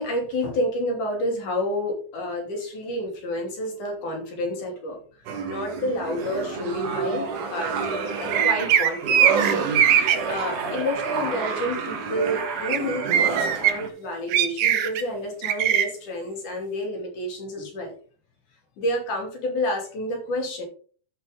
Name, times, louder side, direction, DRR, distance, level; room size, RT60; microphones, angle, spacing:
voice 1, 0.0-7.8 8.1-9.5 9.8-17.9 18.8-20.6, left 1 dB, 80° left, 1 dB, 4.3 m, -29 dB
sound 1, 5.3-13.9, right 5 dB, 85° right, 2.9 m, -29 dB
sound 2, 8.3-10.2 12.7-12.8 13.1-13.7 14.3-15.0 15.4-15.8, right 9 dB, 65° right, 1.8 m, -20 dB
13.0 x 5.7 x 3.7 m, 0.41 s
omnidirectional pair, 3.5 m